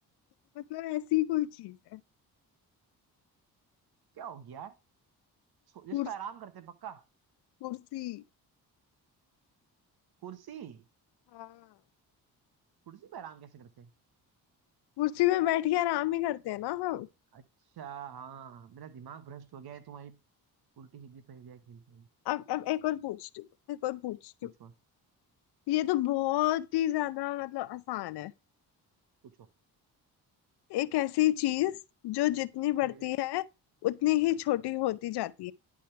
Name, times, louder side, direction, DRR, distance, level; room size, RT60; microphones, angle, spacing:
voice 1, 0.6-2.0 5.9-6.1 7.6-8.2 11.3-11.6 15.0-17.1 22.3-24.5 25.7-28.3 30.7-33.5 33.8-35.5, left 15 dB, 75° left, 0.6 m, -30 dB
voice 2, 4.1-4.7 5.7-7.0 10.2-10.8 12.9-13.9 17.3-17.4 17.7-20.2 20.8-22.1 24.4-24.7 29.4-29.5 32.8-33.1, right 8 dB, 65° right, 1.2 m, -45 dB
10.5 x 3.6 x 4.5 m
supercardioid pair, 65°, 40 cm